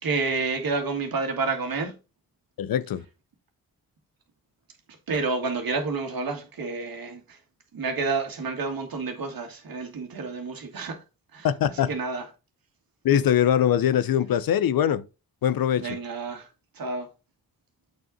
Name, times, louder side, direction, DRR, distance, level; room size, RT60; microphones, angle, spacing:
voice 1, 0.0-2.0 5.1-7.4 7.7-11.0 11.3-12.3 15.8-16.5 16.8-17.1, right 4 dB, 65° right, 2.1 m, -29 dB
voice 2, 2.6-3.0 11.4-11.9 13.0-15.1 15.4-16.0, left 10 dB, 65° left, 0.7 m, -22 dB
8.0 x 4.8 x 4.0 m
supercardioid pair, 45°, 38 cm